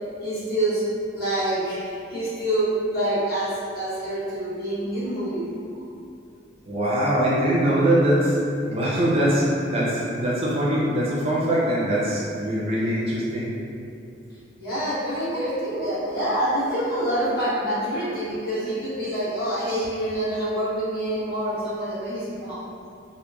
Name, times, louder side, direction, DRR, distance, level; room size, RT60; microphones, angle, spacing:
voice 1, 0.2-0.8 1.1-5.4 14.6-22.6, right 1 dB, 55° left, -11 dB, 1.0 m, -26 dB
voice 2, 6.7-8.4 8.6-13.5 15.7-15.9, right 1 dB, 35° right, -7 dB, 0.5 m, -22 dB
2.9 x 2.1 x 2.3 m, 2.5 s
head